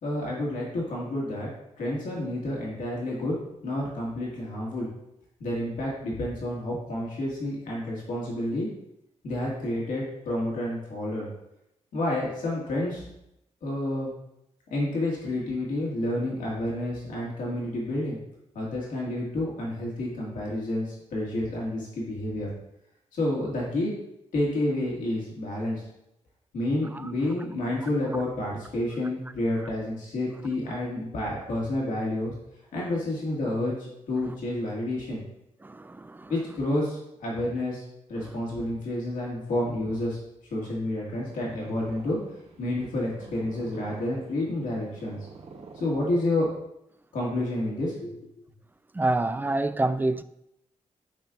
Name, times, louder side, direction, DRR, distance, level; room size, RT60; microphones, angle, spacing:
voice 1, 0.0-1.5 1.8-3.3 3.6-4.9 5.4-8.7 9.2-11.3 11.9-13.0 13.6-14.1 14.7-18.2 18.5-22.5 23.1-23.9 24.3-25.8 26.5-32.3 32.7-35.2 36.3-37.8 38.1-40.2 40.5-42.2 42.6-45.3 45.7-46.5 47.1-48.3, left 1 dB, 85° left, 2.1 m, -29 dB
voice 2, 35.6-36.3 38.2-38.3 45.6-45.7 48.9-50.2, right 2 dB, 15° right, 0.4 m, -28 dB
Purr, 40.9-46.6, right 4 dB, 55° right, 1.0 m, -48 dB
11.0 x 4.4 x 2.6 m
cardioid pair, 65°, 13 cm